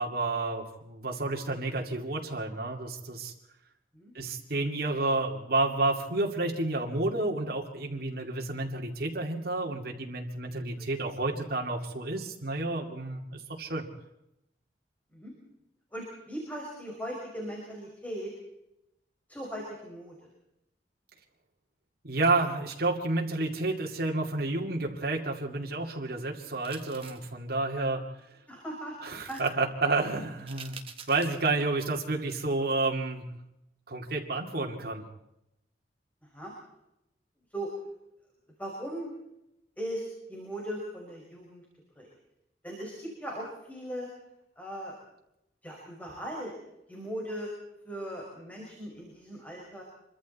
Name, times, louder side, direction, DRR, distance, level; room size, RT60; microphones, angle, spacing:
voice 1, 0.0-3.3 4.1-13.9 22.0-28.0 29.0-30.8 31.1-33.2 33.9-35.1, right 2 dB, 60° right, 0 dB, 2.4 m, -30 dB
voice 2, 15.9-18.3 19.3-20.2 28.5-29.0 29.3-29.4 36.3-36.5 37.5-37.7 38.6-39.1 39.8-41.6 42.0-42.1 42.6-44.1 44.6-45.0 45.6-46.5 46.9-47.5 47.8-49.8, equal, 10° left, -2 dB, 5.6 m, -38 dB
sound 1, 26.6-27.3 29.2-29.5 30.5-31.4 31.8-31.9, right 6 dB, 35° right, 1.9 m, -47 dB
26.5 x 24.0 x 4.2 m, 0.85 s
head